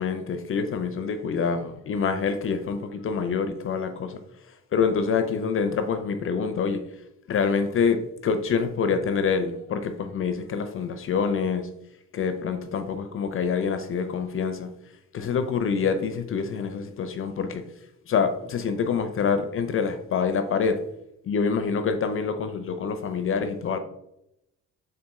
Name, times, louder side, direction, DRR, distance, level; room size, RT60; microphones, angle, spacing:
voice 1, 0.0-4.2 4.7-6.8 7.3-11.7 12.1-14.7 15.1-17.6 18.1-20.8 21.2-23.8, left 5 dB, 45° left, 8 dB, 0.4 m, -26 dB
4.0 x 2.6 x 3.5 m, 0.82 s
cardioid pair, 90°, 30 cm